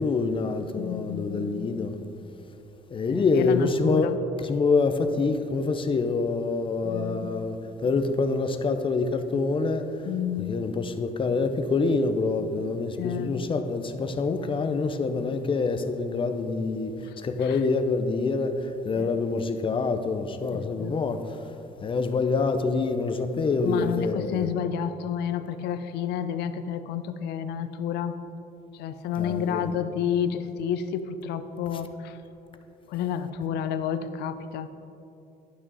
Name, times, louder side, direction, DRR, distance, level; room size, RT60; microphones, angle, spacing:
voice 1, 0.0-2.0 2.9-10.0 10.4-21.5 21.8-24.5 29.2-29.7 31.7-31.8, left 4 dB, 30° left, 0.6 m, -26 dB
voice 2, 0.8-1.6 3.1-4.1 6.8-7.3 10.1-10.6 13.0-13.4 18.9-19.1 20.8-20.9 23.6-28.2 28.8-32.1 32.9-34.7, left 8 dB, 75° left, 0.5 m, -30 dB
11.0 x 6.1 x 4.1 m
cardioid pair, 110°, 17 cm